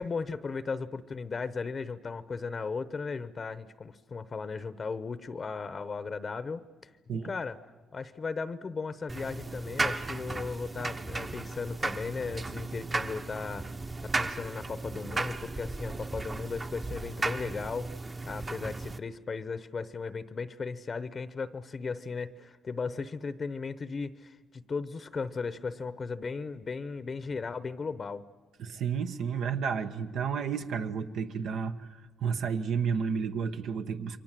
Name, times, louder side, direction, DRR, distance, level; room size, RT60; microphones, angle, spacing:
voice 1, 0.0-6.6 7.2-7.6 7.9-13.7 14.0-17.9 18.2-28.3, left 4 dB, 40° left, 14 dB, 0.9 m, -36 dB
sound 1, 9.1-19.0, right 3 dB, 25° right, 1.0 m, -35 dB
voice 2, 28.6-34.2, right 6 dB, 75° right, 6 dB, 1.1 m, -31 dB
28.5 x 23.0 x 7.6 m, 1.3 s
cardioid pair, 90°, 0 cm